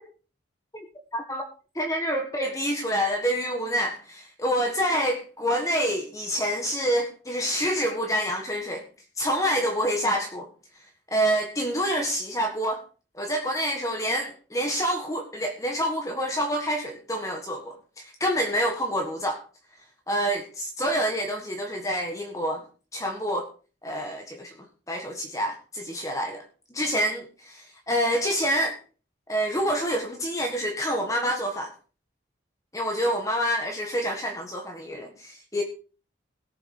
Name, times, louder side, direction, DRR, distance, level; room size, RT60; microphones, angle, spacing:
voice 1, 1.1-1.4 1.7-8.8 9.2-10.5 11.1-12.8 13.1-19.4 20.1-22.6 22.9-23.5 23.8-26.4 26.7-28.8 29.3-31.7 32.7-35.6, equal, 15° left, 2 dB, 1.6 m, -27 dB
17.5 x 7.8 x 4.8 m, 0.37 s
head